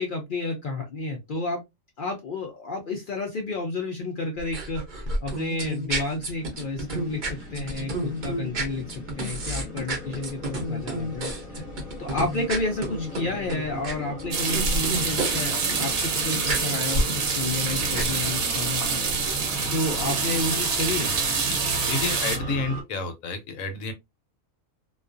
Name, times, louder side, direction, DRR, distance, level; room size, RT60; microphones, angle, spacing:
voice 1, 0.0-1.6 2.0-11.6 12.0-19.0 19.7-21.1, left 2 dB, 60° left, 0.5 m, -31 dB
sound 1, 4.4-15.4 15.6-18.0, right 1 dB, 45° right, 0.7 m, -30 dB
sound 2, 6.1-22.8, left 1 dB, 30° left, 0.9 m, -38 dB
sound 3, 14.3-22.4, right 5 dB, 65° right, 1.0 m, -26 dB
voice 2, 21.9-23.9, left 4 dB, 80° left, 1.0 m, -30 dB
2.3 x 2.3 x 2.4 m
omnidirectional pair, 1.4 m